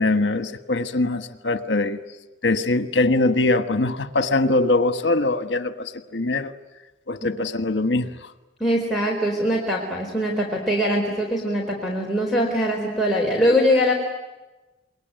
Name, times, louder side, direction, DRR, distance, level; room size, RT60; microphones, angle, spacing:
voice 1, 0.0-2.0 2.4-6.5 7.1-8.1, left 2 dB, 70° left, 1.4 m, -22 dB
voice 2, 8.6-13.9, equal, ahead, 4.4 m, -22 dB
28.0 x 22.0 x 9.3 m
head